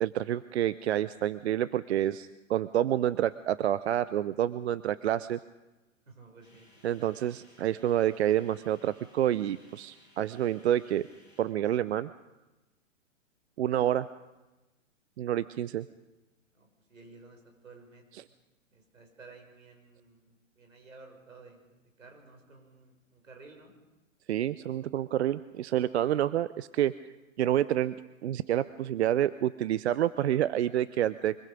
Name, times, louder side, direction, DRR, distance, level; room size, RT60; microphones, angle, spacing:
voice 1, 0.0-5.4 6.8-11.1 11.4-12.1 13.6-14.1 15.2-15.9 24.3-26.9 27.4-27.9 28.2-31.4, right 11 dB, 55° right, 16 dB, 0.7 m, -28 dB
voice 2, 6.1-6.7 13.6-13.9 16.5-18.3 18.7-21.7 22.0-23.7, right 3 dB, 80° right, 3 dB, 6.6 m, -54 dB
sound 1, 6.4-11.4, left 1 dB, 10° right, 7.9 m, -61 dB
25.0 x 22.0 x 5.2 m, 1.0 s
hypercardioid pair, 125°, 39 cm